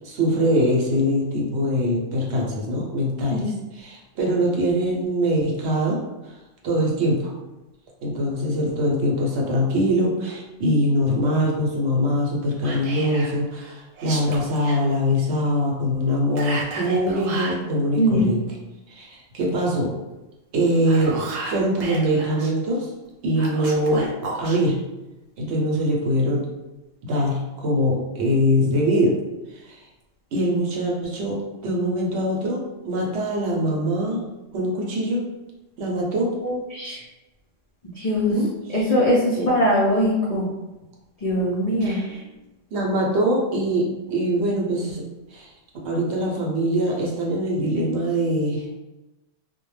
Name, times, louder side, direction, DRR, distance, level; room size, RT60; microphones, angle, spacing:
voice 1, 0.0-3.4 3.7-6.3 6.6-7.3 8.0-18.4 18.9-19.9 20.5-21.2 21.4-22.9 23.2-24.8 25.4-26.4 27.0-29.2 29.5-29.8 30.3-34.2 34.5-35.3 35.8-36.3 38.3-38.5 39.3-39.5 41.8-42.2 42.7-45.0 45.3-45.5 45.8-48.8, equal, 65° right, -2 dB, 0.8 m, -23 dB
Whispering, 12.6-13.3 13.9-14.8 16.4-17.6 20.7-22.5 23.4-24.6, right 3 dB, 90° right, 1.0 m, -33 dB
voice 2, 18.0-18.3 36.4-37.0 37.9-38.3 38.7-40.5 41.2-42.0, equal, 60° left, -7 dB, 0.4 m, -21 dB
2.1 x 2.1 x 3.1 m, 1.0 s
omnidirectional pair, 1.3 m